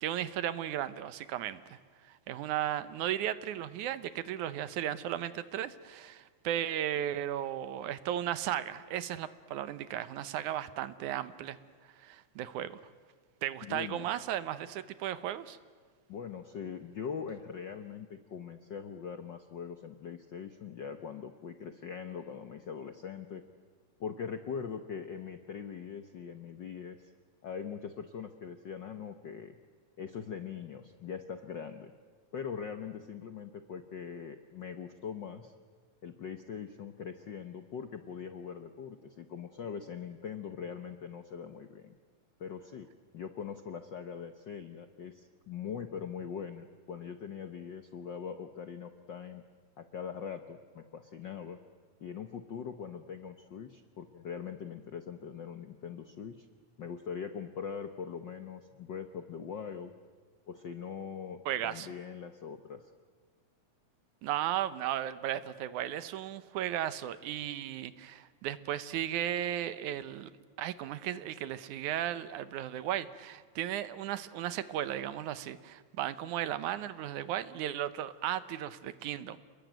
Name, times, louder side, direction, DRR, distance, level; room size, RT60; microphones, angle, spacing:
voice 1, 0.0-11.6 12.0-12.8 13.4-15.6 61.5-61.9 64.2-70.3 70.6-79.4, right 11 dB, 80° right, 13 dB, 2.4 m, -35 dB
voice 2, 13.6-14.1 16.1-23.4 24.0-27.0 27.4-29.6 30.0-31.9 32.3-35.5 36.0-41.9 42.4-42.9 43.1-49.4 49.8-51.6 52.0-56.4 56.8-59.9 60.5-62.9, left 7 dB, 70° left, 8 dB, 1.0 m, -42 dB
29.5 x 21.0 x 9.2 m, 1.5 s
omnidirectional pair, 3.5 m